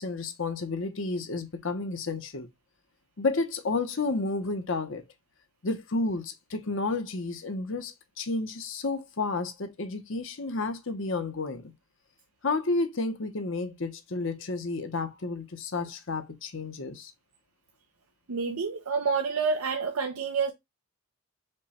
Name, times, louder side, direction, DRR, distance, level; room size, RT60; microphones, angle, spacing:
voice 1, 0.0-2.5 3.2-5.0 5.6-11.7 12.4-17.1, left 3 dB, 60° left, 0.8 m, -31 dB
voice 2, 18.3-20.5, right 5 dB, 80° right, 0.6 m, -28 dB
5.3 x 2.2 x 4.1 m
head